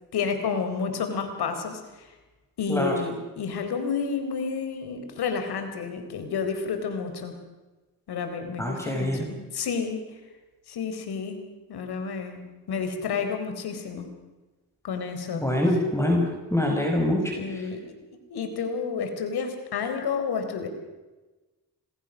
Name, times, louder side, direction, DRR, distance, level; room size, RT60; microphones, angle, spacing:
voice 1, 0.1-2.1 2.6-7.3 8.1-10.1 10.7-11.4 11.7-12.4 12.7-14.1 14.8-15.4 17.3-17.9 18.3-20.7, left 5 dB, 80° left, 7 dB, 4.0 m, -30 dB
voice 2, 8.6-9.3 15.4-16.2 16.5-17.3, left 1 dB, 5° left, 0 dB, 5.6 m, -24 dB
26.5 x 21.5 x 6.3 m, 1.2 s
cardioid pair, 65°, 38 cm